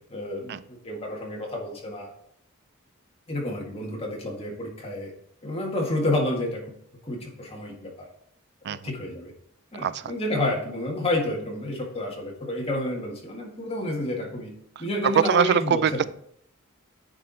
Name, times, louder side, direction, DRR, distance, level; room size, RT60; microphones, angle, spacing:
voice 1, 0.1-2.1 3.3-5.1 5.4-6.7 7.0-8.1 8.7-9.3 9.7-14.5 14.8-16.0, left 1 dB, 30° left, -1 dB, 1.7 m, -30 dB
voice 2, 9.8-10.1 15.0-16.0, right 7 dB, 50° right, 16 dB, 0.3 m, -23 dB
9.6 x 4.6 x 4.0 m, 0.68 s
head